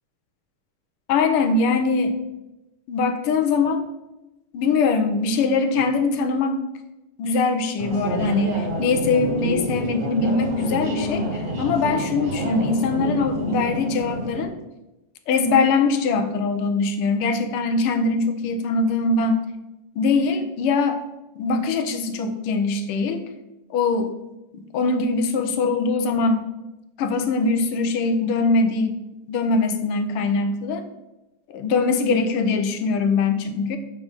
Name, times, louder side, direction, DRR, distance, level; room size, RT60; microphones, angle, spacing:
voice 1, 1.1-2.2 2.9-3.8 4.5-6.6 7.2-14.6 15.3-19.4 20.0-21.0 21.4-23.2 23.7-24.1 24.5-26.5 27.0-29.0 29.3-30.8 31.5-33.8, left 4 dB, 85° left, 8 dB, 1.7 m, -22 dB
sound 1, 7.8-14.5, right 1 dB, 60° right, 0.5 m, -28 dB
5.6 x 4.8 x 6.5 m, 0.97 s
omnidirectional pair, 2.4 m